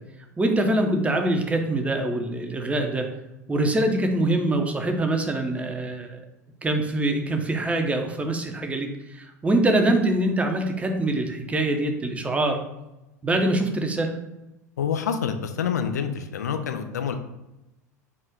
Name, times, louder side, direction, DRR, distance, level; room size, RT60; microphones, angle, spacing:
voice 1, 0.4-3.1 3.5-6.2 6.6-12.6 13.2-14.2, right 1 dB, 15° right, 3 dB, 0.7 m, -24 dB
voice 2, 14.8-17.2, left 7 dB, 75° left, 7 dB, 0.4 m, -27 dB
3.6 x 2.4 x 4.4 m, 0.95 s
figure-of-eight pair, 80°, 9 cm